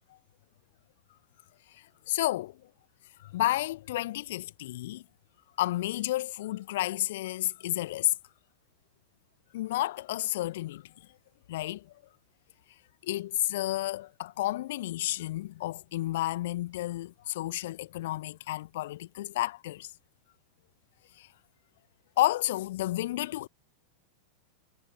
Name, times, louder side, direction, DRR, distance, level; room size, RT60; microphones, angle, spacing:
voice 1, 1.7-2.6 3.2-5.0 5.6-8.1 9.5-10.9 11.5-11.9 13.0-19.9 21.2-21.3 22.2-23.5, left 15 dB, 55° left, 0.9 m, -31 dB
figure-of-eight pair, 90°, 0 cm